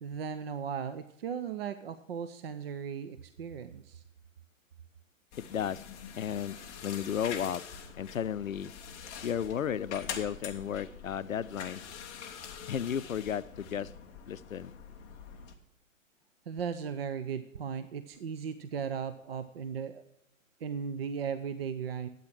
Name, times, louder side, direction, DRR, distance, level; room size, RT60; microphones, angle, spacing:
voice 1, 0.0-4.0 16.5-20.0 20.6-22.1, right 7 dB, 45° right, 11 dB, 0.6 m, -37 dB
sound 1, 5.3-15.5, left 7 dB, 10° left, 0.4 m, -45 dB
voice 2, 5.4-5.8 6.2-6.6 6.8-7.6 8.0-8.7 9.2-11.8 12.7-13.9 14.3-14.7, left 9 dB, 75° left, 17 dB, 0.6 m, -33 dB
11.5 x 8.6 x 6.0 m, 0.88 s
figure-of-eight pair, 120°, 40 cm